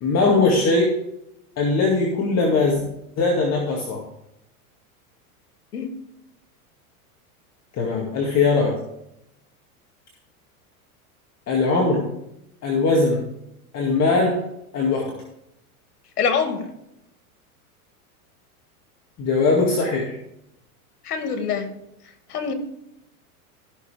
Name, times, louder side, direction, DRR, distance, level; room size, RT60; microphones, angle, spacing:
voice 1, 0.0-1.0 1.6-2.8 3.2-4.0 7.8-8.8 11.5-12.1 12.6-13.3 13.7-14.4 14.7-15.1 19.2-20.1, left 3 dB, 35° left, -1 dB, 2.2 m, -20 dB
voice 2, 16.2-16.6 21.1-21.7 22.3-22.5, left 6 dB, 90° left, 6 dB, 2.1 m, -24 dB
15.5 x 6.7 x 3.5 m, 0.81 s
hypercardioid pair, 115°, 45 cm